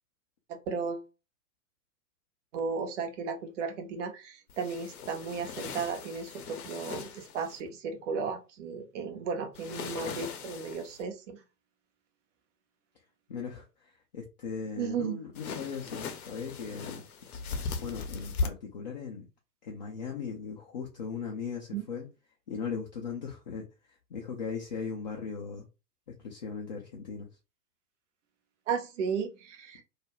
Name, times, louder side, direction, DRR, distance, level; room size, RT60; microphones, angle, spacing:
voice 1, 0.5-1.0 2.5-11.4 14.8-15.2 21.7-21.8 28.7-29.8, right 5 dB, 50° right, 5 dB, 0.7 m, -35 dB
sound 1, 4.5-7.6 9.5-11.0 15.3-18.5, left 4 dB, 65° left, 0.7 m, -38 dB
voice 2, 13.3-17.0 17.8-19.3 19.6-22.1 22.5-23.7 24.1-25.7 26.2-27.3, left 5 dB, 30° left, -1 dB, 0.4 m, -38 dB
2.4 x 2.1 x 2.9 m, 0.29 s
figure-of-eight pair, 105°, 47 cm